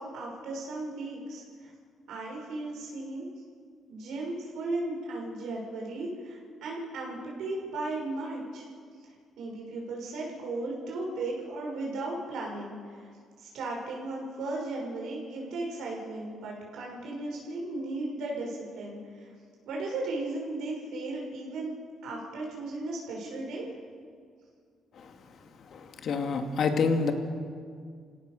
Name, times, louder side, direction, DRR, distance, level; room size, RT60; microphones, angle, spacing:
voice 1, 0.0-1.7 2.1-3.2 3.9-8.7 9.4-13.1 13.4-19.3 19.6-21.7 22.0-23.7, right 2 dB, 80° right, -2 dB, 6.4 m, -36 dB
voice 2, 25.7-27.1, left 5 dB, 60° left, 5 dB, 2.5 m, -27 dB
29.0 x 17.0 x 6.9 m, 2.1 s
cardioid pair, 90°, 0 cm